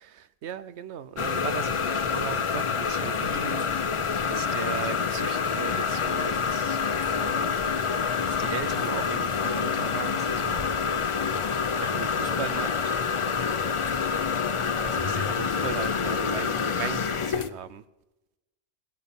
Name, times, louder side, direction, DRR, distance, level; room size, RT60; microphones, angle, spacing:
voice 1, 0.0-3.7 4.3-7.6 8.3-10.7 11.8-12.9 14.8-17.8, right 9 dB, 85° right, 1.0 m, -38 dB
sound 1, 1.2-17.5, left 6 dB, 40° left, 0.5 m, -27 dB
17.5 x 10.5 x 7.0 m
omnidirectional pair, 1.1 m